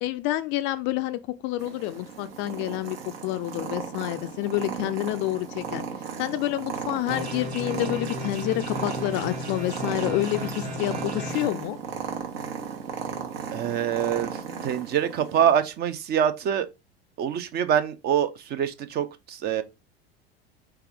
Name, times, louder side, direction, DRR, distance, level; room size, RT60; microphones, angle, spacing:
voice 1, 0.0-3.0 3.2-5.8 6.2-11.8, left 15 dB, 35° left, 0.4 m, -28 dB
Purr, 1.6-15.5, right 6 dB, 65° right, 1.1 m, -35 dB
sound 1, 7.1-11.5, left 1 dB, 85° right, 0.9 m, -35 dB
voice 2, 13.5-16.7 17.2-19.6, right 9 dB, 30° right, 0.5 m, -25 dB
4.3 x 3.4 x 3.5 m
figure-of-eight pair, 75°, 32 cm